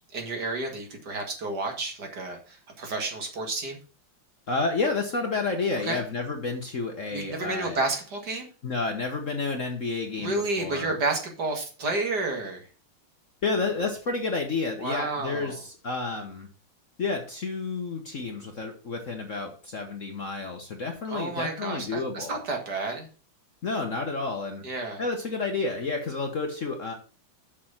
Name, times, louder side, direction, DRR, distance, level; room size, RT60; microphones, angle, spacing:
voice 1, 0.1-3.8 5.9-6.0 7.1-8.5 10.2-12.6 14.8-15.6 21.1-23.1 24.6-25.0, right 3 dB, 55° right, 3 dB, 2.4 m, -31 dB
voice 2, 4.5-7.8 8.6-10.9 13.4-16.5 17.0-22.4 23.6-24.6 25.0-26.9, left 3 dB, 45° left, 4 dB, 1.2 m, -30 dB
6.7 x 6.3 x 5.7 m, 0.37 s
omnidirectional pair, 2.2 m